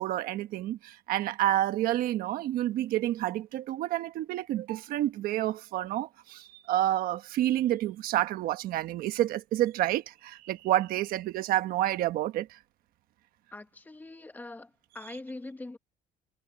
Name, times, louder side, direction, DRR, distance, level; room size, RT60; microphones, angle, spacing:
voice 1, 0.0-12.6, right 13 dB, 70° right, 1.3 m, -29 dB
voice 2, 13.5-15.8, left 2 dB, 10° left, 1.4 m, -43 dB
cardioid pair, 155°, 16 cm